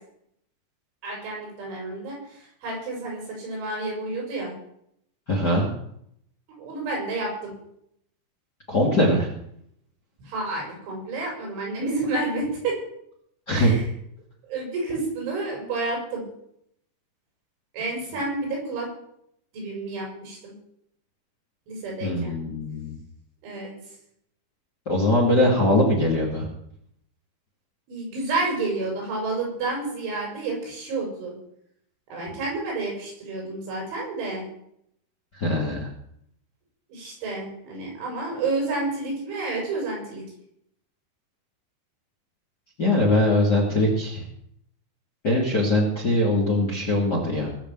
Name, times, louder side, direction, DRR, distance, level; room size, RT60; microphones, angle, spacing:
voice 1, 1.0-4.5 6.6-7.5 10.2-12.8 13.5-13.9 14.4-16.2 17.7-18.9 19.5-20.5 21.7-22.3 23.4-23.7 27.9-31.3 32.1-34.5 36.9-40.2, right 3 dB, 80° right, -1 dB, 8.6 m, -30 dB
voice 2, 5.3-5.7 8.7-9.3 13.5-13.7 22.0-23.0 24.9-26.5 35.3-35.9 42.8-44.2 45.2-47.5, left 1 dB, 35° left, -1 dB, 1.9 m, -21 dB
20.0 x 6.8 x 7.7 m, 0.73 s
omnidirectional pair, 5.4 m